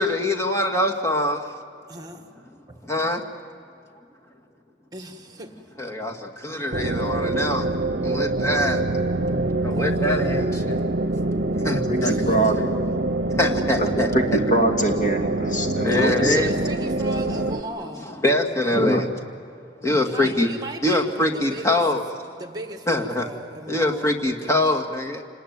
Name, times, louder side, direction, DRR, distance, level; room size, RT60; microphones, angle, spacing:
voice 1, 0.0-1.4 2.9-3.2 5.8-7.7 8.0-8.8 9.6-10.8 11.6-12.5 13.1-14.4 15.5-17.0 17.4-19.1 19.8-22.0 22.9-23.3 23.7-25.2, left 1 dB, 15° left, 2.1 m, -24 dB
voice 2, 1.9-2.2 4.9-5.6 9.7-10.1 12.0-12.4 15.8-18.1 20.0-21.8 22.4-24.1 24.4-24.6, right 1 dB, 20° right, 1.7 m, -36 dB
sound 1, 6.7-17.6, right 2 dB, 60° right, 0.9 m, -25 dB
voice 3, 11.9-12.6 13.8-13.9 14.1-16.5 18.7-19.0 19.9-20.0 20.2-20.3, right 1 dB, 45° left, 2.7 m, -23 dB
28.0 x 19.5 x 9.6 m
head